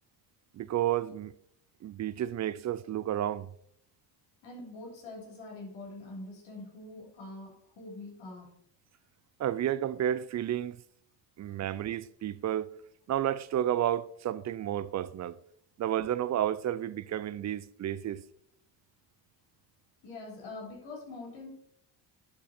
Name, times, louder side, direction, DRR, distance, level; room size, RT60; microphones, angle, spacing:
voice 1, 0.5-1.3 1.8-3.5 9.4-10.8 11.4-12.8 13.1-15.4 15.8-18.2, right 11 dB, 40° right, 0.4 m, -31 dB
voice 2, 4.4-8.5 20.0-21.5, left 2 dB, 75° left, 3.4 m, -44 dB
11.5 x 3.9 x 4.2 m
supercardioid pair, 75°, 45 cm